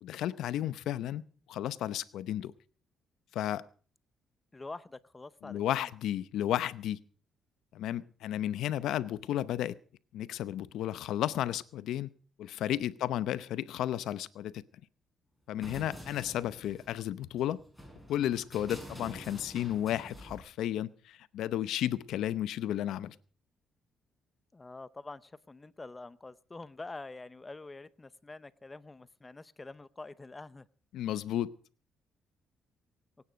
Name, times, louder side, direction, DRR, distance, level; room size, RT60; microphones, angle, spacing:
voice 1, 0.0-1.2 1.5-2.5 3.3-3.6 5.4-7.0 7.7-9.8 10.1-12.1 12.4-14.6 15.5-17.6 18.1-23.1 30.9-31.5, left 12 dB, 80° left, 16 dB, 0.7 m, -33 dB
voice 2, 4.5-5.9 13.0-13.4 24.5-30.7, left 3 dB, 20° left, 16 dB, 0.7 m, -46 dB
sound 1, 15.6-20.4, equal, ahead, 7.8 m, -48 dB
23.5 x 9.7 x 5.1 m, 0.42 s
cardioid pair, 90°, 0 cm